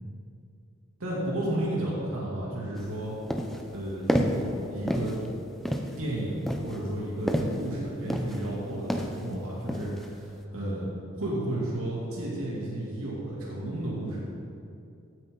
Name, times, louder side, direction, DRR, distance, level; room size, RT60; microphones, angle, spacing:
voice 1, 1.0-3.1 3.7-5.2 6.0-10.9 11.2-14.2, right 1 dB, 85° right, -5 dB, 2.8 m, -32 dB
sound 1, 2.8-2.9 3.3-3.7 4.1-4.5 4.9-5.3 5.6-6.0 6.5-7.7 8.1-8.5 8.9-9.2 9.7-10.1, equal, ahead, 0.6 m, -29 dB
16.0 x 9.2 x 3.9 m, 2.6 s
head